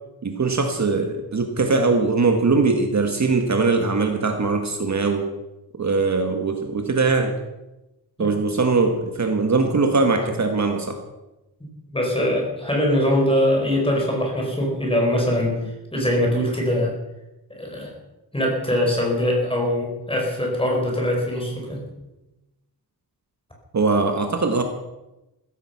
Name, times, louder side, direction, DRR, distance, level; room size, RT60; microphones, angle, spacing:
voice 1, 0.2-5.3 5.8-7.3 8.2-11.0 23.7-24.6, right 3 dB, 45° right, 5 dB, 1.5 m, -21 dB
voice 2, 11.9-15.6 15.9-16.9 17.5-17.9 18.3-21.8, left 1 dB, 15° left, -1 dB, 5.1 m, -22 dB
15.5 x 15.0 x 5.9 m, 1.0 s
wide cardioid pair, 175°, 39 cm